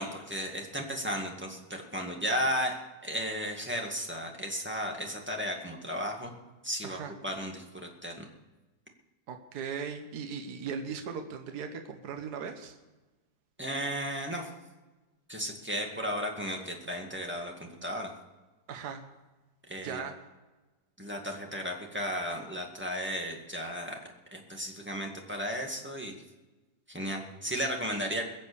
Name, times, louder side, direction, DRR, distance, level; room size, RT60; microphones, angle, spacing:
voice 1, 0.0-6.3 6.6-8.3 13.6-14.5 15.3-18.1 19.7-20.0 21.0-24.0 24.3-26.1 26.9-28.2, equal, 5° right, 1 dB, 2.0 m, -34 dB
voice 2, 6.8-7.1 9.3-12.8 18.7-19.0 19.8-20.1, right 6 dB, 60° right, 5 dB, 1.7 m, -38 dB
21.5 x 7.5 x 7.0 m, 1.2 s
omnidirectional pair, 2.0 m